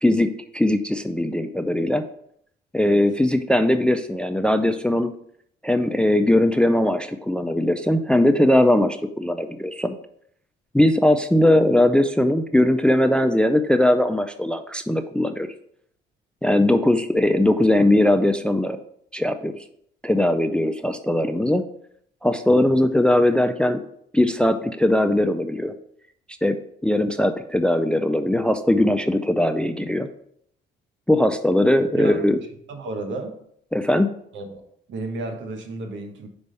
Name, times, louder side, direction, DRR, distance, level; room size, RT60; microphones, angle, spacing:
voice 1, 0.0-2.0 2.7-5.1 5.6-9.9 10.7-15.5 16.4-18.8 19.1-19.6 20.0-21.7 22.2-23.8 24.1-25.7 26.4-26.6 26.8-30.1 31.1-32.4 33.7-34.1, left 1 dB, 5° left, 9 dB, 0.4 m, -20 dB
voice 2, 31.9-33.4 34.3-34.6 34.9-36.3, right 3 dB, 70° right, 5 dB, 1.1 m, -32 dB
5.2 x 3.4 x 5.3 m, 0.69 s
cardioid pair, 90°, 20 cm